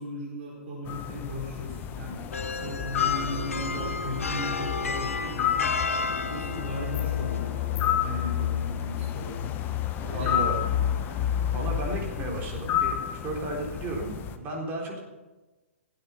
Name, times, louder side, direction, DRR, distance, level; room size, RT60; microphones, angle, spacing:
voice 1, 0.0-5.7 6.3-9.5 10.0-10.5, left 1 dB, 50° right, -4 dB, 4.7 m, -37 dB
sound 1, 0.9-14.4, left 10 dB, 25° left, 1.0 m, -30 dB
sound 2, 2.3-12.6, left 4 dB, 90° left, 1.1 m, -35 dB
voice 2, 10.1-10.6 11.5-13.0 13.2-15.0, right 2 dB, 30° right, -1 dB, 4.0 m, -33 dB
16.0 x 9.4 x 5.9 m, 1.2 s
hypercardioid pair, 130°, 7 cm